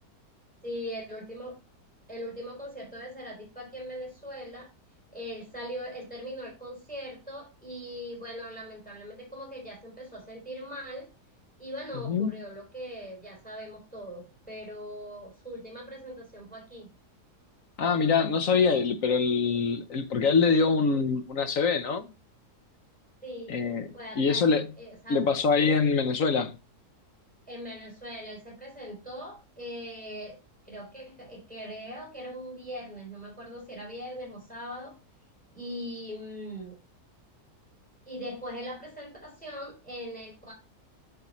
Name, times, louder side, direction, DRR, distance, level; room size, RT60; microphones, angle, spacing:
voice 1, 0.6-1.6 2.1-4.7 5.1-11.1 11.6-16.9 23.2-23.6 23.9-25.3 27.5-30.4 30.6-35.0 35.5-36.8 38.1-40.5, equal, 5° left, 3.9 m, -40 dB
voice 2, 17.8-22.1 23.5-23.8 24.2-24.7 25.1-26.5, left 5 dB, 60° left, 1.2 m, -24 dB
9.4 x 5.8 x 3.1 m
omnidirectional pair, 1.7 m